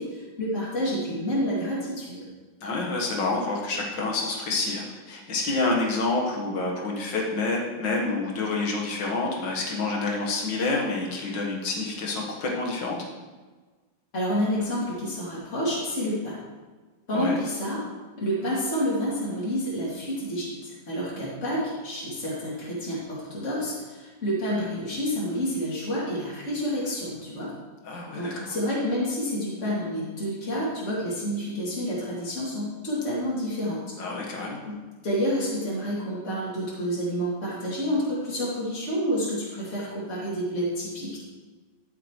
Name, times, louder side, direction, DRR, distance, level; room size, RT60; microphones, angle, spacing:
voice 1, 0.0-2.2 14.1-16.4 17.1-17.8 18.2-27.5 28.1-33.8 34.7-41.2, equal, 35° left, -8 dB, 3.0 m, -29 dB
voice 2, 2.6-13.0 17.1-17.4 27.8-28.6 34.0-34.6, left 3 dB, 65° left, -1 dB, 2.2 m, -28 dB
13.0 x 6.9 x 3.2 m, 1.3 s
omnidirectional pair, 2.2 m